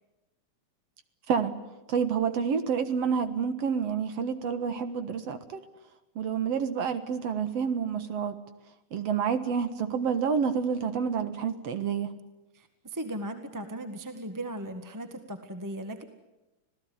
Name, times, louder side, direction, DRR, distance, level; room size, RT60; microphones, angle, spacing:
voice 1, 1.9-5.6 6.2-8.3 8.9-12.1, right 6 dB, 55° right, 10 dB, 2.3 m, -28 dB
voice 2, 12.5-16.0, right 1 dB, 10° right, 7 dB, 1.0 m, -37 dB
26.5 x 17.5 x 9.6 m, 1.0 s
omnidirectional pair, 3.6 m